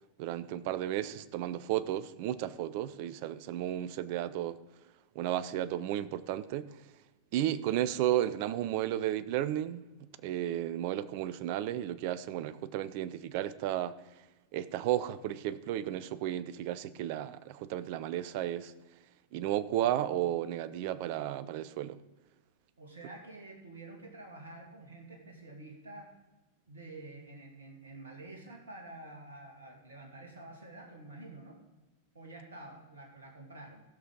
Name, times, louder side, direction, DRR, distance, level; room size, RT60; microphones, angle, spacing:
voice 1, 0.2-4.6 5.1-6.8 7.3-14.0 14.5-18.7 19.3-22.0, right 12 dB, 45° right, 0.6 m, -33 dB
voice 2, 22.8-26.1 26.7-31.6 32.1-33.8, right 2 dB, 70° right, 2.3 m, -48 dB
15.5 x 6.4 x 5.3 m
figure-of-eight pair, 90°, 0 cm